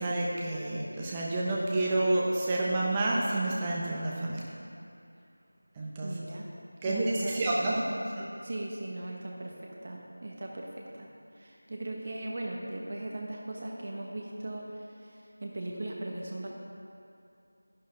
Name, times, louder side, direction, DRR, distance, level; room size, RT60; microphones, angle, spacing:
voice 1, 0.0-4.4 5.8-6.1 6.8-7.9 8.1-8.3, right 2 dB, 10° right, -4 dB, 1.0 m, -29 dB
voice 2, 6.0-6.5 6.8-8.1 8.4-11.1 11.3-16.5, right 1 dB, 35° right, -1 dB, 1.2 m, -39 dB
14.0 x 11.0 x 3.4 m, 2.5 s
figure-of-eight pair, 175°, 0 cm